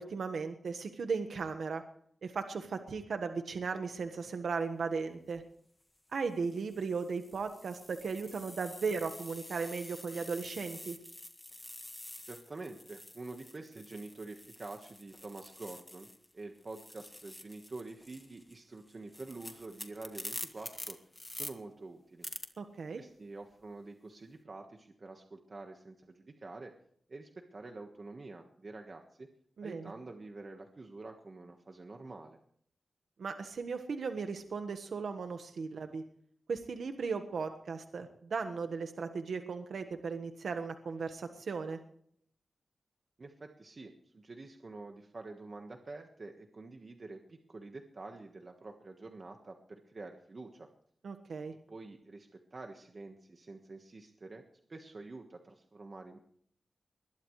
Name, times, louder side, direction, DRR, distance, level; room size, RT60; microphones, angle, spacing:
voice 1, 0.0-1.8 2.2-5.4 6.1-11.0 22.6-23.0 29.6-29.9 33.2-36.0 36.5-41.8 51.0-51.5, right 5 dB, 80° right, 6 dB, 1.3 m, -36 dB
sound 1, 5.2-5.4 6.2-16.3 16.6-21.5 22.2-22.5, left 1 dB, 15° left, 1.7 m, -48 dB
voice 2, 12.2-16.1 16.3-21.0 21.3-22.3 23.0-26.7 27.1-29.3 29.6-32.4 43.2-50.7 51.7-54.4 54.7-56.2, right 3 dB, 35° right, 3 dB, 1.4 m, -47 dB
21.5 x 20.5 x 3.3 m, 0.65 s
wide cardioid pair, 165°, 0 cm